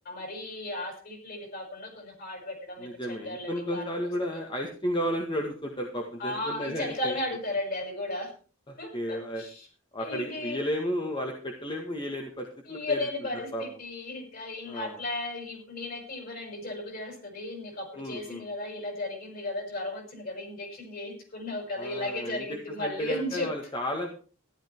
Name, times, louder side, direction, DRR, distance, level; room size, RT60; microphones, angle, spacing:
voice 1, 0.0-3.9 6.2-8.3 8.8-9.7 10.0-10.6 12.7-23.5, left 2 dB, 45° left, 3 dB, 6.1 m, -35 dB
voice 2, 2.8-7.2 8.7-9.4 9.9-13.1 13.5-13.6 14.7-15.0 17.9-18.4 21.8-24.1, equal, 25° left, 2 dB, 1.7 m, -33 dB
14.0 x 12.0 x 4.6 m, 0.38 s
head